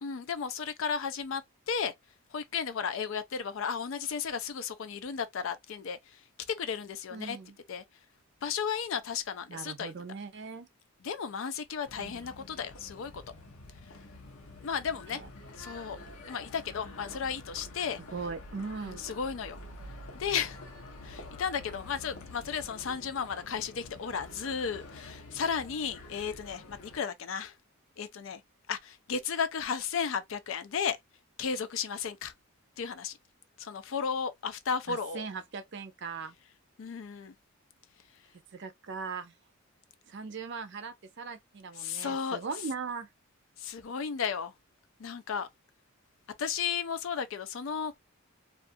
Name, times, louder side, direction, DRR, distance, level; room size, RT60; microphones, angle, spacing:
voice 1, 0.0-1.4 1.7-1.9 2.3-6.0 6.6-7.4 7.7-7.8 8.4-9.9 11.0-13.2 14.6-15.2 15.6-16.0 16.3-18.0 18.8-19.6 20.1-20.6 21.0-27.5 28.0-28.4 28.7-31.0 31.4-32.3 32.8-33.2 33.6-35.2 36.8-37.3 41.8-42.4 43.6-44.5 45.0-45.5 46.4-48.0, left 6 dB, 60° left, 0.4 m, -34 dB
voice 2, 7.1-7.5 9.5-10.7 12.0-12.3 15.1-15.3 18.1-19.1 34.9-36.3 38.5-39.3 40.1-43.1, right 5 dB, 50° right, 0.5 m, -39 dB
sound 1, 11.8-27.0, left 2 dB, 85° left, 0.8 m, -48 dB
2.4 x 2.4 x 2.5 m
head